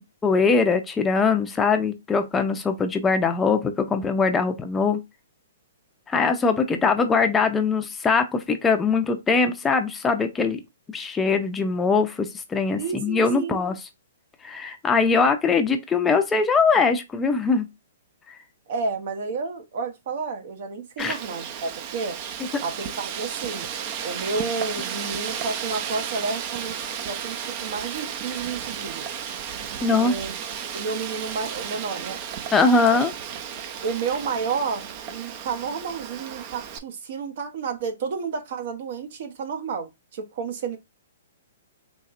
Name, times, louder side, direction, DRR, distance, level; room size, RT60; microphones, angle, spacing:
voice 1, 0.2-5.0 6.1-10.6 10.9-13.8 14.4-17.7 18.3-18.4 21.0-21.2 22.4-22.6 29.8-30.1 32.5-33.1, left 4 dB, 15° left, 0.5 m, -22 dB
voice 2, 12.8-13.6 18.7-22.2 22.6-23.7 24.0-26.7 27.0-29.2 29.9-30.3 30.7-32.2 33.8-40.8, right 4 dB, 55° right, 1.0 m, -31 dB
Wind, 21.0-36.8, right 8 dB, 40° right, 0.6 m, -34 dB
4.2 x 3.1 x 2.5 m
hypercardioid pair, 135°, 0 cm